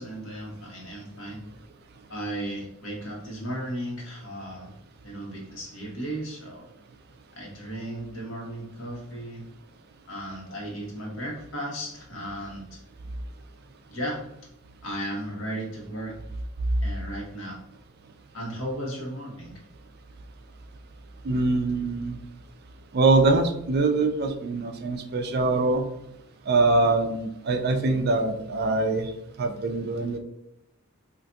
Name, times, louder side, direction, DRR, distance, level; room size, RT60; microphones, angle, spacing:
voice 1, 0.0-1.4 2.1-4.7 5.0-6.7 7.3-9.4 10.1-12.8 13.9-14.2 14.8-16.1 16.8-17.6 18.3-19.5, right 1 dB, 65° left, -3 dB, 1.1 m, -35 dB
voice 2, 21.2-22.2 22.9-25.9 26.5-29.1 29.4-30.2, right 3 dB, 50° right, 6 dB, 0.4 m, -23 dB
3.8 x 2.5 x 2.3 m, 0.79 s
head